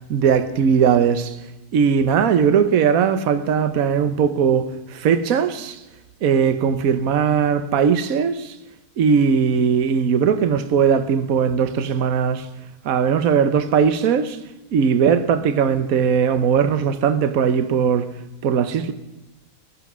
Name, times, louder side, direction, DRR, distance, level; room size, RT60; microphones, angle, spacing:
voice 1, 0.1-1.4 1.7-5.8 6.2-8.5 9.0-12.5 12.8-14.4 14.7-18.1 18.4-18.9, right 7 dB, 65° right, 1.3 m, -19 dB
15.5 x 14.5 x 6.2 m
omnidirectional pair, 1.6 m